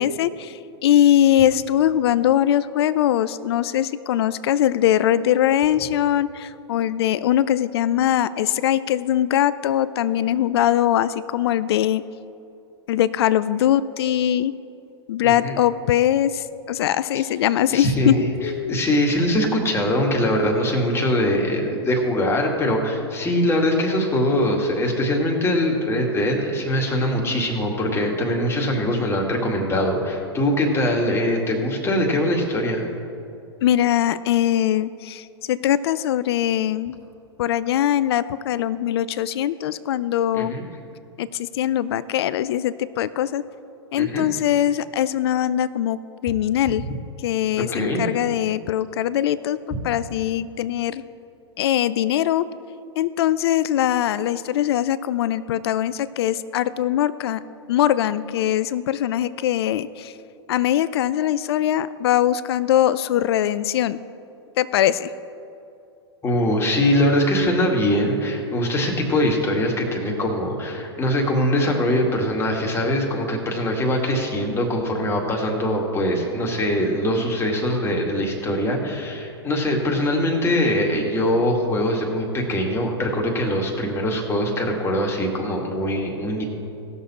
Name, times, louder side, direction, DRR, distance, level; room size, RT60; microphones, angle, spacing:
voice 1, 0.0-12.0 12.9-14.5 15.1-18.8 33.6-37.0 37.4-40.5 41.2-43.4 43.9-46.9 47.2-49.6 49.8-51.0 51.6-52.5 53.0-57.4 57.7-60.1 60.5-64.0 64.6-65.1, left 11 dB, 65° left, 16 dB, 0.4 m, -21 dB
voice 2, 15.2-15.6 17.1-17.2 17.7-32.9 40.3-40.6 44.0-44.3 47.6-48.1 66.2-86.4, left 1 dB, 15° left, 0 dB, 2.1 m, -22 dB
18.0 x 6.8 x 4.3 m, 2.6 s
hypercardioid pair, 110°, 14 cm